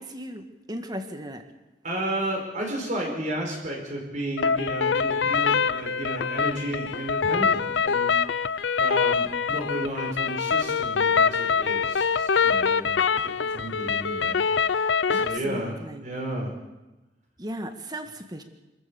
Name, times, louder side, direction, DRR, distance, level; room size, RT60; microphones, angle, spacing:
voice 1, 0.0-1.4 15.1-16.1 17.4-18.4, equal, 20° right, 7 dB, 1.7 m, -36 dB
voice 2, 1.8-8.1 8.8-13.1 13.4-14.4 14.7-16.5, right 1 dB, 45° right, 0 dB, 4.8 m, -33 dB
sound 1, 4.4-15.4, left 6 dB, 85° left, 0.6 m, -24 dB
26.5 x 14.0 x 7.1 m, 1.1 s
head